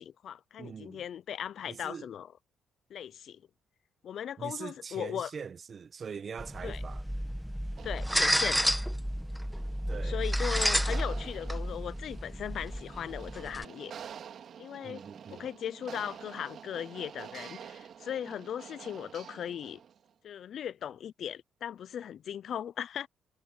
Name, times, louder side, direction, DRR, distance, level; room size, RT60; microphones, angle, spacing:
voice 1, 0.0-2.3 2.9-3.4 4.0-5.3 6.6-6.8 7.8-8.7 10.0-13.9 14.6-15.0 15.3-19.8 20.2-23.1, left 9 dB, 65° left, 0.6 m, -38 dB
voice 2, 0.6-1.0 1.7-2.1 4.4-7.0 9.9-10.2 14.8-15.5, right 6 dB, 45° right, 1.3 m, -42 dB
sound 1, 6.4-13.6, equal, ahead, 1.4 m, -31 dB
sound 2, 7.7-20.1, right 8 dB, 60° right, 2.2 m, -49 dB
cardioid pair, 90°, 0 cm